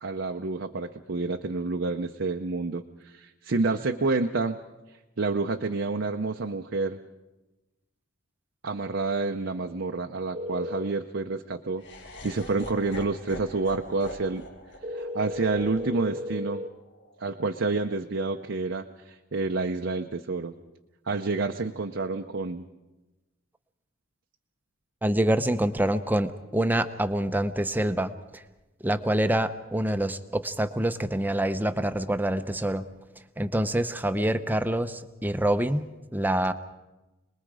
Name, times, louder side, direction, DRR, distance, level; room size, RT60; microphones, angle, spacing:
voice 1, 0.0-4.6 5.2-7.0 8.6-11.8 12.2-14.4 14.9-16.6 17.2-20.5 21.1-22.6, right 3 dB, 60° right, 4 dB, 0.7 m, -29 dB
sound 1, 10.3-10.9 14.8-16.7, left 1 dB, 30° right, 1.0 m, -34 dB
Laughter, 11.8-17.9, left 1 dB, 55° left, 2.0 m, -45 dB
voice 2, 25.0-28.4 28.8-32.9 33.4-36.5, right 1 dB, 10° right, 10 dB, 0.7 m, -26 dB
27.0 x 20.5 x 4.9 m, 1.1 s
head